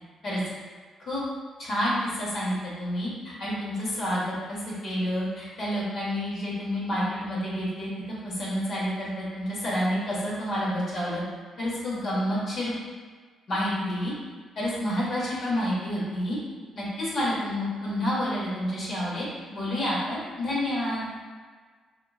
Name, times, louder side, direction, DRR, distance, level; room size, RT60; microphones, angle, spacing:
voice 1, 1.6-3.1 3.4-11.2 11.6-12.7 13.5-14.1 14.5-16.4 16.7-21.0, equal, 60° left, -7 dB, 1.4 m, -29 dB
3.8 x 2.9 x 2.4 m, 1.5 s
cardioid pair, 90°, 0 cm